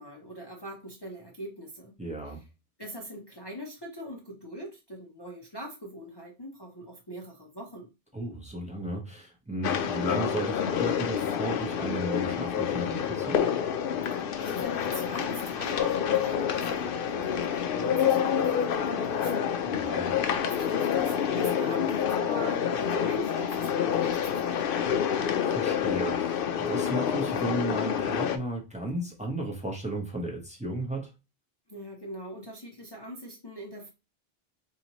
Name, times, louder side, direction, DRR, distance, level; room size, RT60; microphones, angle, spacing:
voice 1, 0.0-2.0 2.2-2.4 2.8-7.9 14.4-19.5 20.4-25.0 31.7-33.9, equal, 25° left, -1 dB, 0.7 m, -42 dB
voice 2, 2.0-2.4 8.1-13.4 19.7-20.1 25.4-31.1, right 1 dB, 5° right, -1 dB, 0.9 m, -34 dB
sound 1, 9.6-28.4, left 8 dB, 65° left, 0.7 m, -28 dB
4.1 x 2.8 x 3.0 m, 0.27 s
omnidirectional pair, 1.0 m